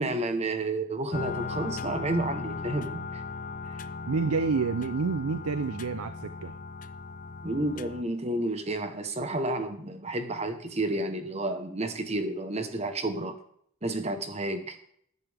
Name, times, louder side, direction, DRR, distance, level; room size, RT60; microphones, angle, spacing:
voice 1, 0.0-3.2 3.7-3.8 7.4-13.4 13.8-14.8, right 2 dB, 30° right, 8 dB, 1.1 m, -31 dB
sound 1, 1.1-8.0, left 4 dB, 35° left, 0.5 m, -37 dB
voice 2, 4.1-6.5, right 4 dB, 90° right, 13 dB, 0.6 m, -28 dB
14.0 x 10.5 x 3.5 m, 0.67 s
head